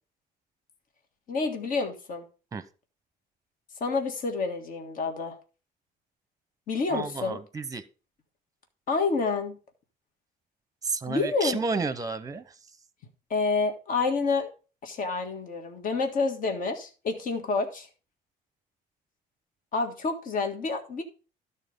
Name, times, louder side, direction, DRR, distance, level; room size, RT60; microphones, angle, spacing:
voice 1, 1.3-2.3 3.8-5.3 6.7-7.4 8.9-9.5 11.1-11.6 13.3-14.5 14.8-17.9 19.7-21.0, left 4 dB, 55° left, 1.7 m, -28 dB
voice 2, 6.9-7.8 10.8-12.5, right 4 dB, 20° right, 0.8 m, -31 dB
12.5 x 4.2 x 5.2 m
cardioid pair, 110°, 17 cm